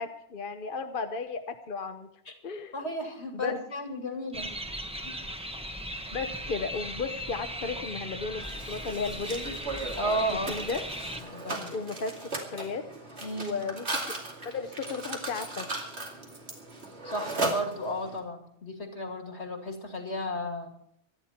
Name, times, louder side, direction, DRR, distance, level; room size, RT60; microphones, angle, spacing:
voice 1, 0.0-2.1 2.4-2.7 3.3-3.6 6.1-9.5 10.3-10.8 11.7-12.1 12.5-12.8 13.4-13.9 14.4-15.7, left 4 dB, 55° left, 7 dB, 1.0 m, -34 dB
voice 2, 2.7-4.5 5.0-5.2 10.0-10.5 11.3-11.7 13.2-13.6 17.0-20.7, equal, 85° left, 4 dB, 2.8 m, -33 dB
sound 1, 4.3-11.2, equal, 5° right, 1.0 m, -37 dB
Mechanisms, 8.4-18.2, right 2 dB, 80° right, 2.7 m, -37 dB
24.5 x 10.0 x 4.3 m, 0.70 s
omnidirectional pair, 1.1 m